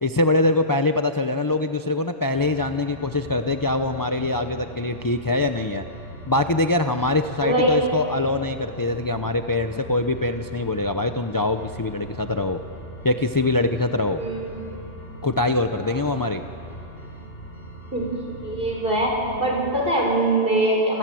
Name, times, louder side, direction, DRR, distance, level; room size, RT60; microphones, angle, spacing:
voice 1, 0.0-5.8 6.3-12.6 13.0-14.2 15.2-16.4, left 2 dB, 20° left, 7 dB, 0.7 m, -23 dB
sound 1, 2.3-19.8, right 1 dB, 55° left, 4.1 m, -40 dB
voice 2, 7.4-7.8 14.2-14.7 15.8-16.0 17.9-18.1 18.4-19.1 19.4-21.0, right 1 dB, 50° right, -1 dB, 6.5 m, -22 dB
27.5 x 27.0 x 7.8 m, 2.7 s
omnidirectional pair, 1.1 m